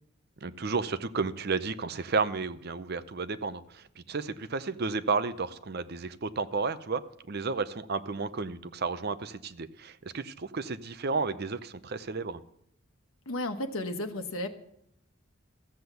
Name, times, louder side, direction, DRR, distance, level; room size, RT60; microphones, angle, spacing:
voice 1, 0.4-7.0 7.3-12.4, right 4 dB, 50° right, 13 dB, 0.6 m, -32 dB
voice 2, 13.3-14.5, left 1 dB, 80° left, 6 dB, 1.2 m, -33 dB
14.5 x 7.9 x 6.8 m, 0.75 s
head